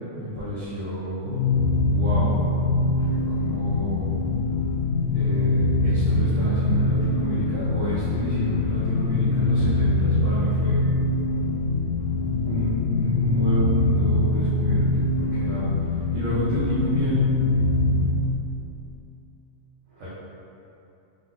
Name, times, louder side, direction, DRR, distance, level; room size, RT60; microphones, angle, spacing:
voice 1, 0.1-2.3 2.9-4.1 5.1-10.9 11.8-11.9 12.4-17.2 19.9-20.1, equal, 65° right, -12 dB, 1.3 m, -30 dB
sound 1, 1.2-18.3, left 2 dB, 75° left, 1.0 m, -23 dB
3.8 x 3.4 x 3.8 m, 2.8 s
omnidirectional pair, 1.4 m